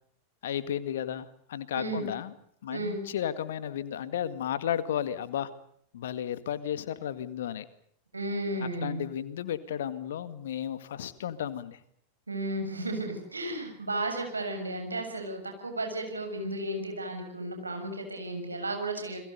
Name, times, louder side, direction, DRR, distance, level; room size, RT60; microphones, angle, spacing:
voice 1, 0.4-2.3 2.6-5.5 5.9-7.7 8.8-11.8, left 10 dB, 60° left, 13 dB, 2.0 m, -33 dB
voice 2, 1.7-2.1 2.7-3.0 8.1-9.0 12.3-19.2, right 1 dB, 80° right, 5 dB, 7.1 m, -34 dB
29.0 x 22.5 x 6.8 m, 0.67 s
figure-of-eight pair, 90°, 0 cm